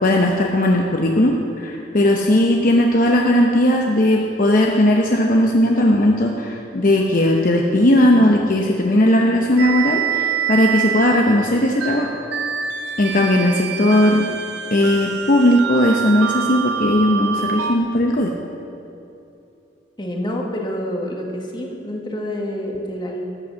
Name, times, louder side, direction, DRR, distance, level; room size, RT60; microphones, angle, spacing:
voice 1, 0.0-12.1 13.0-14.2 14.7-18.3, left 1 dB, 50° left, 1 dB, 0.8 m, -17 dB
sound 1, 9.6-17.8, right 7 dB, 65° right, 0.7 m, -26 dB
voice 2, 20.0-23.2, equal, 25° left, 0 dB, 1.6 m, -27 dB
13.5 x 8.0 x 6.9 m, 2.8 s
head